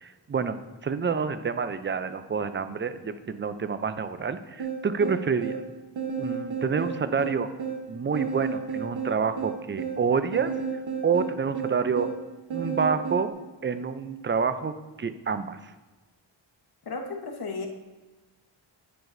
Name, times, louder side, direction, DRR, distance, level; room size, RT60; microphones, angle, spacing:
voice 1, 0.0-5.6 6.2-7.5 7.9-10.5 11.0-12.1 12.5-13.3 13.6-15.6, right 5 dB, 25° right, 11 dB, 0.4 m, -28 dB
sound 1, 4.6-13.3, right 6 dB, 75° right, 1.2 m, -33 dB
voice 2, 16.9-17.7, left 3 dB, 50° left, 3 dB, 1.1 m, -34 dB
9.5 x 5.9 x 2.6 m, 1.2 s
wide cardioid pair, 80°, 47 cm